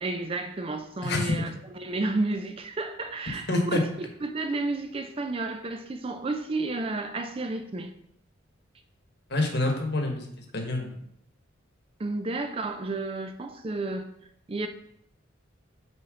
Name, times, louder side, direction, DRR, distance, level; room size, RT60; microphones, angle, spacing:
voice 1, 0.0-7.9 12.0-14.1 14.5-14.7, right 2 dB, 25° right, 0.4 m, -31 dB
voice 2, 1.0-1.5 3.5-3.8 9.3-11.0, left 2 dB, 55° left, 1.3 m, -27 dB
6.2 x 4.3 x 5.0 m
head